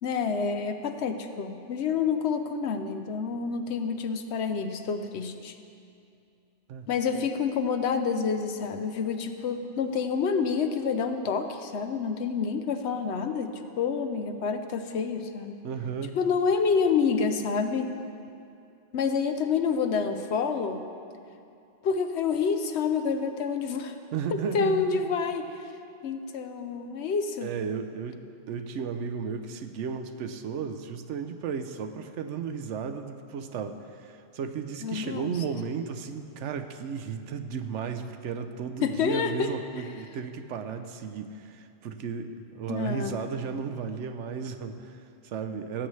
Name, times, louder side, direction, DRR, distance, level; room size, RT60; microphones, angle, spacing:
voice 1, 0.0-5.6 6.9-15.6 16.1-17.9 18.9-20.9 21.8-24.0 24.3-25.5 26.0-27.5 34.8-35.3 38.8-39.5 42.7-43.2, left 5 dB, 70° left, 7 dB, 0.9 m, -28 dB
voice 2, 15.6-16.2 24.1-25.2 27.4-45.9, right 6 dB, 75° right, 8 dB, 0.9 m, -34 dB
17.5 x 8.0 x 3.2 m, 2.5 s
omnidirectional pair, 1.2 m